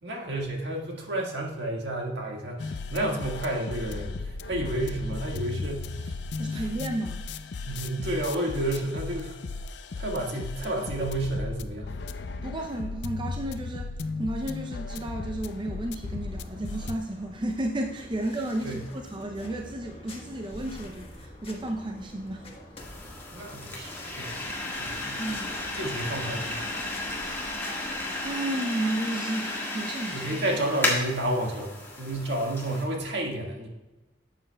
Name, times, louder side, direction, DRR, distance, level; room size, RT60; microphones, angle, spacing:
voice 1, 0.0-6.1 6.5-6.6 7.6-9.4 10.0-11.9 18.6-18.8 23.3-24.4 24.8-25.2 25.7-26.6 30.1-33.7, right 1 dB, 70° right, 0 dB, 1.7 m, -31 dB
sound 1, 2.6-17.0, left 3 dB, 70° left, 0.5 m, -36 dB
voice 2, 6.4-7.2 12.4-22.5 25.2-25.6 28.2-30.3, right 1 dB, 25° right, 3 dB, 0.5 m, -33 dB
sound 2, 15.7-28.3, left 1 dB, 30° left, 1.3 m, -46 dB
sound 3, 22.8-32.8, left 2 dB, 15° left, 1.6 m, -33 dB
11.5 x 7.6 x 2.2 m, 1.1 s
head